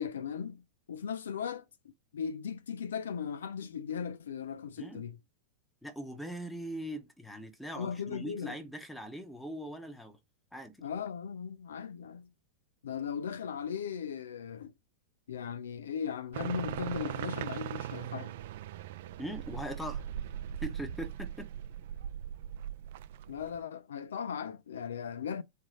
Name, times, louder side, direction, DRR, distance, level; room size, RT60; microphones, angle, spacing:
voice 1, 0.0-1.6 2.1-5.2 7.8-8.6 10.8-12.3 12.8-14.7 15.3-18.3 23.3-25.4, left 7 dB, 75° left, 0.4 m, -37 dB
voice 2, 5.8-10.2 10.5-10.8 19.2-20.0 20.6-21.5, right 1 dB, 5° left, 1.3 m, -41 dB
sound 1, 16.3-23.6, right 10 dB, 60° right, 0.4 m, -39 dB
4.0 x 3.0 x 4.0 m
figure-of-eight pair, 90°, 0 cm